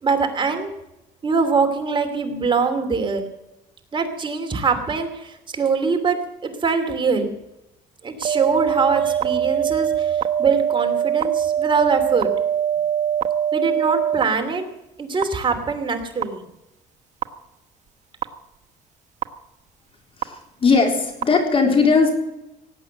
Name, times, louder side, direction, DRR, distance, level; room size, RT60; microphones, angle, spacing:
voice 1, 0.0-0.7 1.2-3.2 3.9-7.3 8.0-12.3 13.5-14.7 15.0-16.4, right 5 dB, 30° right, 5 dB, 2.8 m, -23 dB
sound 1, 8.2-14.2 15.2-15.3 16.2-16.3 17.2-17.3 18.2-18.3 19.2-19.3 20.2-20.3 21.2-21.3, right 8 dB, 45° right, 1.1 m, -22 dB
voice 2, 20.2-22.1, left 4 dB, 35° left, 4 dB, 3.8 m, -18 dB
18.0 x 8.7 x 7.7 m, 0.90 s
cardioid pair, 110°, 17 cm